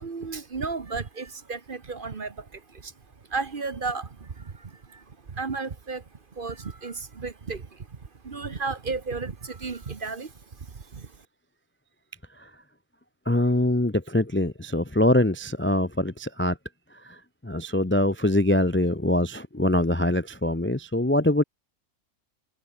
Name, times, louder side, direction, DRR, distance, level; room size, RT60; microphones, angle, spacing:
voice 1, 0.0-2.9 3.3-6.0 6.3-8.0 8.2-10.3 10.7-11.1, right 4 dB, 35° right, 1.3 m, -34 dB
voice 2, 13.3-16.6 17.0-21.4, left 1 dB, 10° left, 0.6 m, -23 dB
omnidirectional pair, 1.6 m